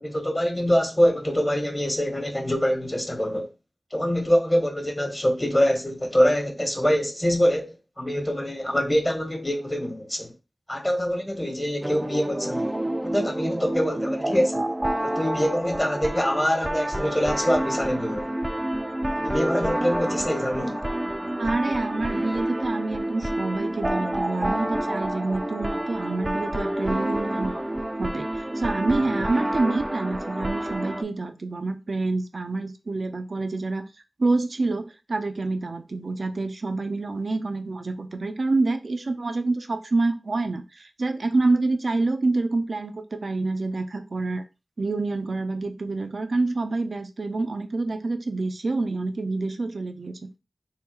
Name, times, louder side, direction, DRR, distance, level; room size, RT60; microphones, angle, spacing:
voice 1, 0.0-3.5 3.9-10.3 10.7-12.7 13.0-14.7 15.0-18.3 19.2-20.8 29.2-29.3, equal, 25° left, 1.2 m, -24 dB
sound 1, 11.8-31.0, right 1 dB, 20° right, 0.5 m, -28 dB
voice 2, 21.4-27.6 28.0-33.8 34.2-44.4 44.8-50.3, right 3 dB, 70° right, 0.5 m, -27 dB
3.7 x 2.2 x 4.5 m
cardioid pair, 40°, 0 cm